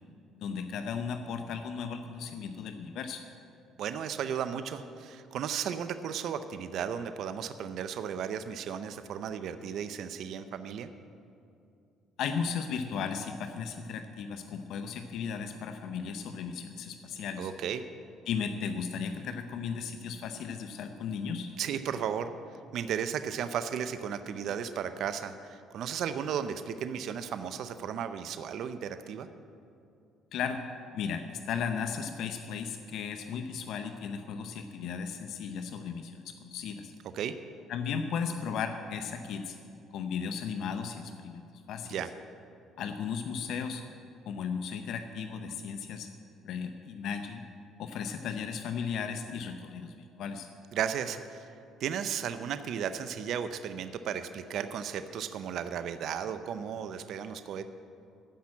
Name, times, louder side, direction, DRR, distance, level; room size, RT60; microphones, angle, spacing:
voice 1, 0.4-3.2 12.2-17.5 18.3-21.5 30.3-30.7 30.9-36.9 37.7-39.6 39.9-41.9 42.8-43.8 44.2-46.1 46.4-47.5 47.8-50.5, left 6 dB, 70° left, 7 dB, 0.7 m, -35 dB
voice 2, 3.8-10.9 17.4-17.9 21.6-22.3 22.7-29.3 37.1-37.3 41.8-42.1 50.7-51.5 51.8-57.6, right 8 dB, 65° right, 11 dB, 0.6 m, -35 dB
14.0 x 6.0 x 8.6 m, 2.6 s
supercardioid pair, 85°, 0 cm